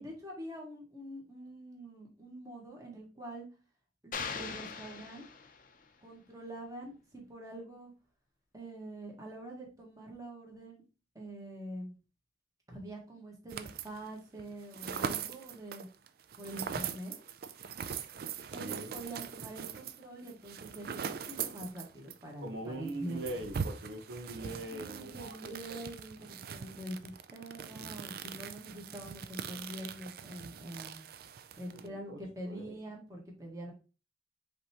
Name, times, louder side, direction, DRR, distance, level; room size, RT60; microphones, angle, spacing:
voice 1, 0.0-3.5 4.0-5.3 6.0-7.9 8.5-10.8 11.1-11.9 12.7-15.9 16.4-17.1 18.5-23.3 24.7-31.0 31.6-33.7, right 1 dB, 20° right, -1 dB, 1.4 m, -45 dB
sound 1, 4.1-5.8, left 5 dB, 50° left, 0.6 m, -41 dB
sound 2, 13.5-14.1 14.4-22.2 22.5-22.6 22.9-31.9, right 7 dB, 55° right, 0.4 m, -41 dB
voice 2, 18.5-18.9 22.4-25.8 31.7-32.8, right 1 dB, 85° right, 3 dB, 1.0 m, -42 dB
5.2 x 3.4 x 2.9 m, 0.33 s
head